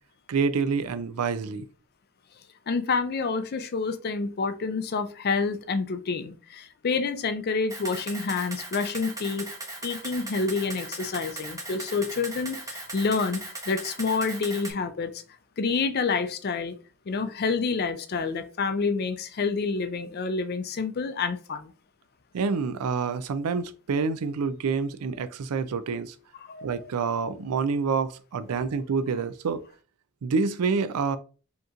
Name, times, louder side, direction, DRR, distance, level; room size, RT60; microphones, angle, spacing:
voice 1, 0.3-1.7 22.3-26.1 26.6-29.6 30.2-31.2, right 5 dB, 85° right, 0.4 m, -27 dB
voice 2, 2.7-9.5 9.8-15.2 15.6-16.7 17.1-21.7 26.3-26.7 28.5-28.6, left 4 dB, 45° left, 0.4 m, -28 dB
Camera, 7.7-14.7, right 2 dB, 15° right, 0.8 m, -38 dB
5.1 x 2.9 x 2.4 m
head